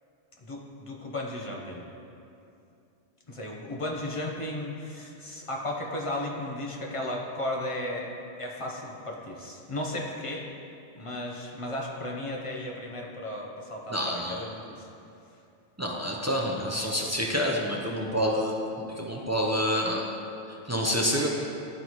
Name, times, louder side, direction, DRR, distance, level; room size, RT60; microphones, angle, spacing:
voice 1, 0.4-1.9 3.3-10.5 11.0-14.9, left 1 dB, 35° left, -2 dB, 0.7 m, -35 dB
voice 2, 13.9-14.4 15.8-18.5 19.0-20.1 20.7-21.3, equal, 25° right, -2 dB, 0.3 m, -27 dB
11.5 x 4.0 x 3.0 m, 2.7 s
omnidirectional pair, 1.1 m